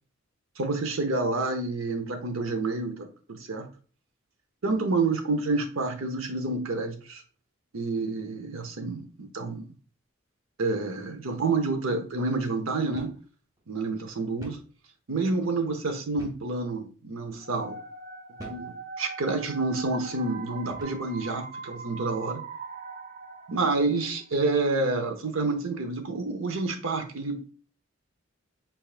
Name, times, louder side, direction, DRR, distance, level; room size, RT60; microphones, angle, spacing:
voice 1, 0.6-3.7 4.6-7.2 7.7-9.6 10.6-13.1 13.7-14.6 15.1-17.8 18.5-22.4 23.5-27.5, right 3 dB, 80° right, 6 dB, 0.8 m, -28 dB
sound 1, 13.0-13.3 13.6-13.7 14.4-14.7 16.2-16.5 17.2-17.4 18.4-18.7 19.5-19.7 20.7-21.1, equal, 15° right, 0.7 m, -45 dB
sound 2, 17.4-24.2, right 4 dB, 35° right, 0.4 m, -41 dB
4.6 x 3.5 x 2.4 m, 0.39 s
head